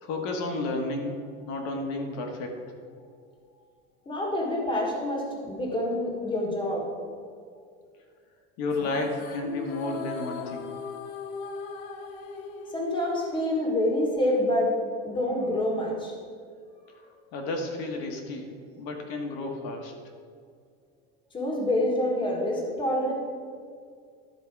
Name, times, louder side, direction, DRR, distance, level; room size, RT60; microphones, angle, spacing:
voice 1, 0.0-2.6 8.6-10.7 17.3-19.9, left 2 dB, 55° left, 2 dB, 1.4 m, -32 dB
voice 2, 4.0-6.9 12.7-14.8 15.0-16.1 21.3-23.1, left 1 dB, 15° left, -1 dB, 1.5 m, -27 dB
sound 1, 8.7-14.2, left 5 dB, 75° left, 1.1 m, -39 dB
12.0 x 4.7 x 4.6 m, 2.1 s
cardioid pair, 170°, 31 cm